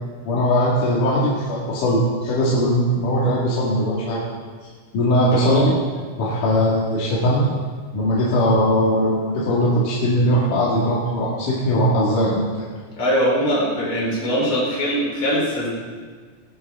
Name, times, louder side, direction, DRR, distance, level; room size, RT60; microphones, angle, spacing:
voice 1, 0.2-4.2 4.9-5.7 6.2-7.5 7.9-12.5, equal, 75° left, -6 dB, 3.4 m, -20 dB
voice 2, 5.3-5.7 13.0-15.7, equal, 40° left, -5 dB, 4.6 m, -21 dB
19.0 x 12.0 x 3.5 m, 1.5 s
omnidirectional pair, 3.7 m